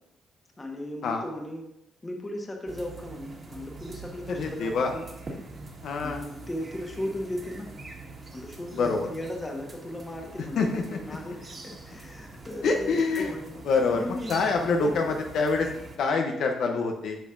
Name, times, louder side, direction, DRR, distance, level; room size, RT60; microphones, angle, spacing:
voice 1, 0.6-1.6 2.0-5.0 6.0-7.7 8.3-13.5 13.9-14.9, left 1 dB, 25° left, 2 dB, 1.3 m, -37 dB
sound 1, 2.7-16.0, right 2 dB, 40° right, 1.6 m, -44 dB
voice 2, 4.3-4.9 5.8-6.2 8.7-9.1 10.6-11.0 12.6-13.3 13.6-15.7 16.0-17.2, left 4 dB, 70° left, 3 dB, 0.7 m, -26 dB
9.1 x 5.3 x 2.6 m, 0.83 s
cardioid pair, 90°, 0 cm